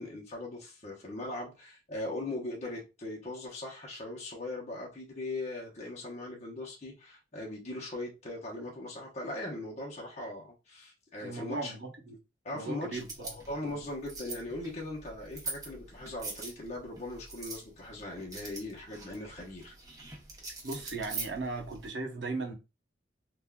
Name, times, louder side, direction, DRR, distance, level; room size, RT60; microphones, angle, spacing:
voice 1, 0.0-11.7 12.4-13.0 13.3-19.7, left 2 dB, 40° left, 0.9 m, -39 dB
voice 2, 11.2-12.2 12.5-13.8 20.6-22.5, right 3 dB, 75° right, 0.8 m, -38 dB
sound 1, 12.9-21.9, right 3 dB, 20° right, 0.8 m, -44 dB
3.5 x 2.4 x 2.2 m
head